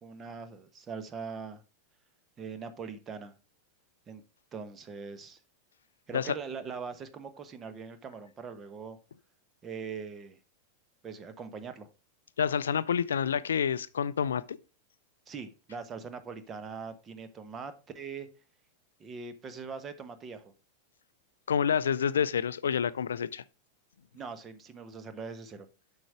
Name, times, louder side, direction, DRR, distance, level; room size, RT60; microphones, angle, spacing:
voice 1, 0.0-1.6 2.4-3.3 4.1-4.2 4.5-5.4 6.1-9.0 9.6-10.4 11.0-11.9 15.3-18.3 19.0-20.5 24.1-25.7, right 5 dB, 25° right, 1.1 m, -41 dB
voice 2, 12.4-14.6 21.5-23.4, left 7 dB, 65° left, 0.4 m, -28 dB
7.6 x 5.7 x 4.8 m
figure-of-eight pair, 90°, 0 cm